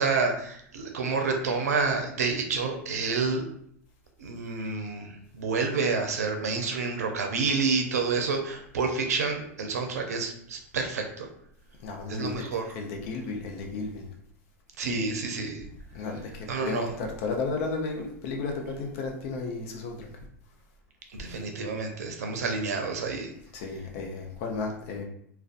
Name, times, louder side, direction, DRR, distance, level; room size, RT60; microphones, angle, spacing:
voice 1, 0.0-3.5 4.2-11.3 12.1-12.7 14.8-15.6 16.5-16.9 21.1-23.3, right 4 dB, 85° right, 4 dB, 0.5 m, -29 dB
voice 2, 11.8-12.5 12.7-14.1 15.9-20.1 23.5-25.0, left 4 dB, 60° left, 2 dB, 0.6 m, -33 dB
2.4 x 2.1 x 2.4 m, 0.67 s
hypercardioid pair, 105°, 8 cm